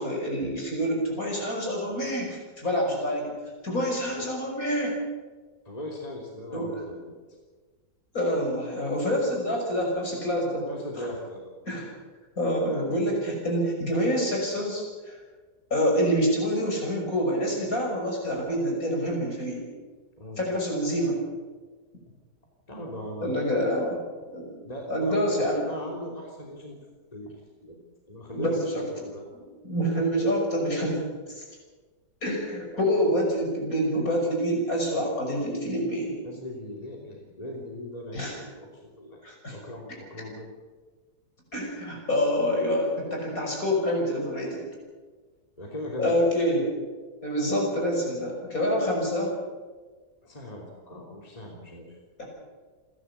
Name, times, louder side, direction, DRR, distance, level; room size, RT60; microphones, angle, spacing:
voice 1, 0.0-3.3 3.6-4.9 6.5-6.8 8.1-10.6 11.0-11.1 11.6-11.9 12.4-15.2 15.7-19.6 20.4-21.2 23.2-24.0 24.3-24.6 24.9-25.7 28.3-28.8 29.3-31.0 31.3-31.4 32.2-36.2 38.1-38.4 39.2-39.6 41.5-44.6 46.0-46.7 47.2-49.3 52.2-52.3, equal, 55° left, 0 dB, 6.5 m, -27 dB
voice 2, 5.6-7.1 10.6-11.5 20.2-20.4 22.7-23.7 24.6-26.8 27.1-27.3 27.6-27.8 28.1-29.2 36.2-39.2 39.5-40.5 45.6-46.2 50.2-52.0, left 1 dB, 20° left, -1 dB, 3.3 m, -39 dB
28.5 x 12.0 x 8.3 m, 1.4 s
omnidirectional pair, 1.8 m